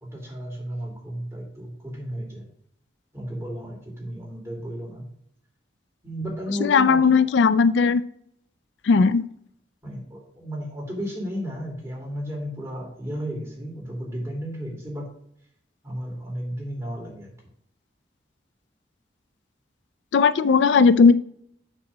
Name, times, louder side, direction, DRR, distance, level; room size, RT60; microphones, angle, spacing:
voice 1, 0.0-2.5 3.1-5.1 6.0-7.2 9.8-15.1 15.8-17.3, equal, 15° right, -1 dB, 2.8 m, -33 dB
voice 2, 6.6-8.0 8.9-9.2 20.1-21.2, left 5 dB, 80° left, 15 dB, 0.4 m, -17 dB
8.7 x 4.1 x 6.0 m, 0.69 s
head